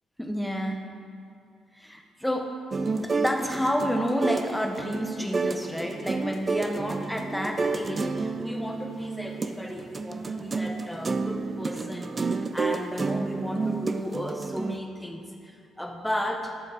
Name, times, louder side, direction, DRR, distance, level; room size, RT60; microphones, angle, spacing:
voice 1, 0.2-0.8 1.7-2.6 2.9-16.5, equal, 5° left, 3 dB, 0.9 m, -32 dB
sound 1, 2.7-14.8, right 3 dB, 30° right, 0.4 m, -30 dB
11.5 x 7.3 x 3.4 m, 2.3 s
cardioid pair, 90°, 0 cm